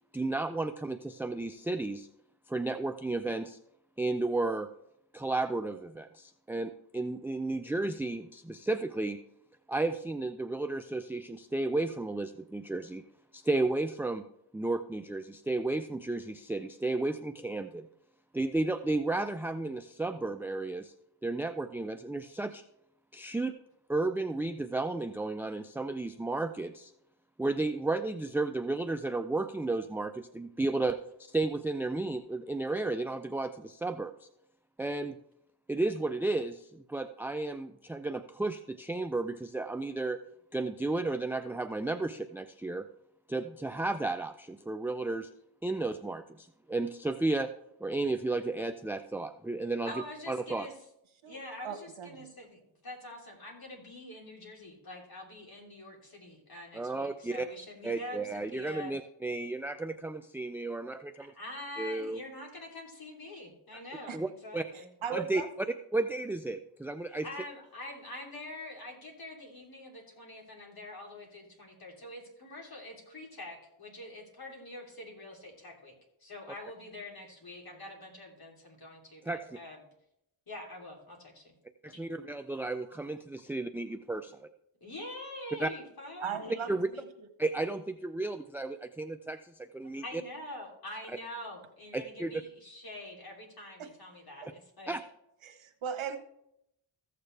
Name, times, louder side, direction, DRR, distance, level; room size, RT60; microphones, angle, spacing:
voice 1, 0.1-2.1 2.5-3.6 4.0-4.7 5.1-9.2 9.7-13.0 13.3-14.2 14.5-17.9 18.3-20.9 21.2-22.6 23.1-23.5 23.9-26.9 27.4-34.3 34.8-35.2 35.7-40.2 40.5-42.9 43.3-45.3 45.6-47.5 47.8-49.9 50.3-50.7 56.7-57.5 57.8-61.3 61.8-62.2 64.1-64.3 64.5-64.6 65.1-65.4 65.9-67.3 79.2-79.6 81.8-84.5 85.6-85.7 86.7-86.9 87.4-90.2 91.9-92.4 94.9-95.0, right 2 dB, 5° right, 8 dB, 0.3 m, -33 dB
voice 2, 49.8-50.7 51.2-58.9 61.3-64.9 67.1-75.9 76.2-79.8 80.5-81.5 81.8-82.1 84.8-87.0 89.8-94.9, left 1 dB, 45° left, -1 dB, 3.3 m, -45 dB
voice 3, 51.6-52.3 64.1-64.2 64.7-65.5 82.9-83.0 86.2-87.0 93.8-93.9 94.4-94.5 95.4-96.2, right 7 dB, 70° right, 7 dB, 1.3 m, -38 dB
15.0 x 6.7 x 3.3 m, 0.78 s
cardioid pair, 75°, 49 cm